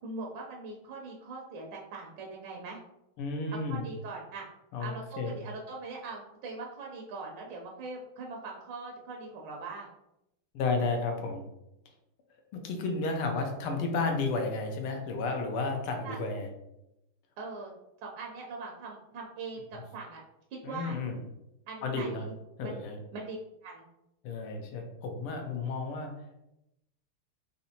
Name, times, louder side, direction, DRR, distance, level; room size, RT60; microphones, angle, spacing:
voice 1, 0.0-2.8 3.7-4.4 4.8-9.9 16.0-16.2 17.4-17.7 18.0-20.2 20.5-21.0 21.7-22.3 22.6-22.8 23.1-23.4 23.6-23.9, right 3 dB, 75° right, -1 dB, 1.1 m, -41 dB
voice 2, 3.2-3.9 4.7-4.9 5.2-5.3 10.5-11.4 12.6-16.5 20.6-21.2 21.8-22.2 22.6-23.0 24.2-26.1, left 3 dB, 85° left, 3 dB, 1.6 m, -32 dB
4.2 x 2.7 x 2.7 m, 0.87 s
omnidirectional pair, 2.4 m